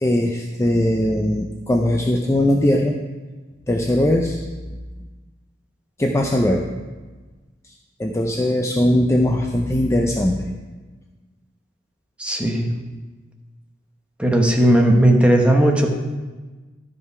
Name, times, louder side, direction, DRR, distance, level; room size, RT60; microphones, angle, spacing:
voice 1, 0.0-3.0 3.7-4.4 6.0-6.7 8.0-10.4, left 1 dB, 15° left, 2 dB, 0.5 m, -20 dB
voice 2, 12.2-12.7 14.2-15.9, right 1 dB, 5° right, 1 dB, 1.0 m, -16 dB
12.0 x 5.6 x 4.7 m, 1.3 s
head